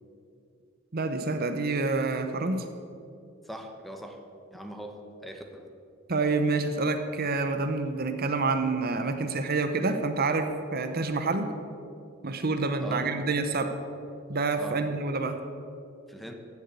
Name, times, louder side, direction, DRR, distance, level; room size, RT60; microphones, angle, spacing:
voice 1, 0.9-2.6 6.1-11.5 12.2-13.8 14.3-15.4, right 3 dB, 50° right, 8 dB, 0.9 m, -28 dB
voice 2, 3.4-4.2 4.5-5.7 12.8-13.0 14.6-14.8 16.1-16.3, right 1 dB, ahead, 4 dB, 1.1 m, -41 dB
15.5 x 7.2 x 8.1 m, 2.5 s
head